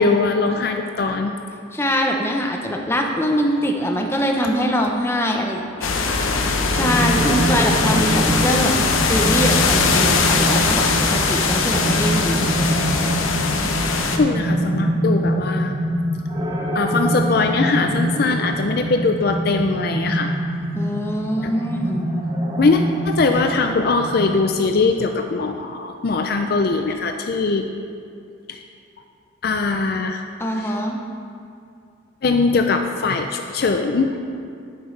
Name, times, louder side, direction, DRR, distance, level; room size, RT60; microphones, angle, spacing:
voice 1, 0.0-1.4 14.2-15.7 16.7-20.3 21.4-21.5 22.6-27.7 28.5-28.6 29.4-30.2 30.5-30.8 32.2-34.2, left 3 dB, 50° left, 5 dB, 0.4 m, -21 dB
voice 2, 1.7-5.9 6.7-8.7 9.1-12.7 20.7-22.1 30.4-31.0, equal, 10° left, 1 dB, 0.7 m, -23 dB
sound 1, 5.8-14.2, left 4 dB, 90° left, 0.8 m, -20 dB
sound 2, 6.7-24.4, right 1 dB, 20° right, 0.8 m, -25 dB
10.5 x 9.0 x 3.2 m, 2.4 s
head